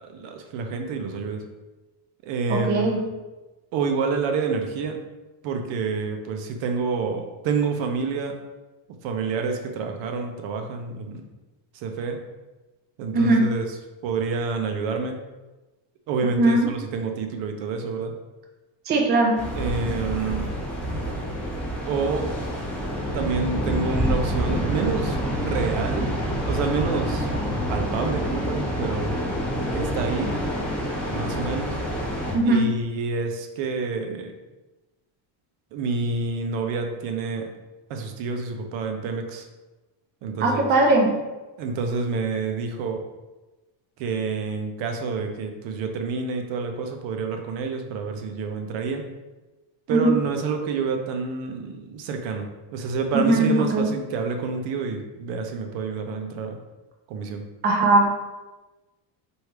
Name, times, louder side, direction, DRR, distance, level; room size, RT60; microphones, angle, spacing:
voice 1, 0.0-1.4 2.2-3.0 3.7-5.0 5.4-8.4 9.0-11.3 11.7-12.2 13.0-13.6 14.0-15.2 16.1-18.1 19.6-20.5 21.9-22.3 23.1-26.1 26.4-27.3 27.7-29.1 29.7-30.4 31.1-31.8 32.4-34.3 35.7-37.5 37.9-39.4 40.2-40.7 41.6-43.0 44.0-49.0 49.9-56.6 57.1-57.5, right 4 dB, 65° right, 4 dB, 0.7 m, -28 dB
voice 2, 2.5-3.0 13.1-13.4 16.4-16.7 18.9-19.4 32.3-32.7 40.4-41.1 49.9-50.1 53.1-53.9 57.6-58.1, right 2 dB, 20° right, 0 dB, 0.4 m, -19 dB
sound 1, 19.4-32.3, equal, ahead, 0.9 m, -27 dB
3.2 x 2.7 x 4.5 m, 1.1 s
cardioid pair, 145°, 47 cm